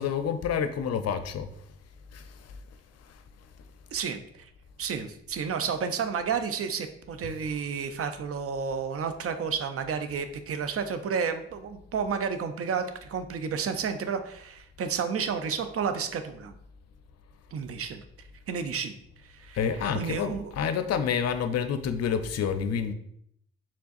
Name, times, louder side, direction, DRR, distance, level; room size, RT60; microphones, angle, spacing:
voice 1, 0.0-1.5 2.1-2.2 7.2-7.4 19.5-22.9, left 7 dB, 55° left, 9 dB, 0.5 m, -28 dB
voice 2, 3.9-4.5 4.8-16.5 17.5-18.0 18.5-18.9 19.2-19.6 19.9-20.5, right 6 dB, 50° right, 9 dB, 0.5 m, -31 dB
4.5 x 3.6 x 2.6 m, 0.70 s
hypercardioid pair, 40°, 31 cm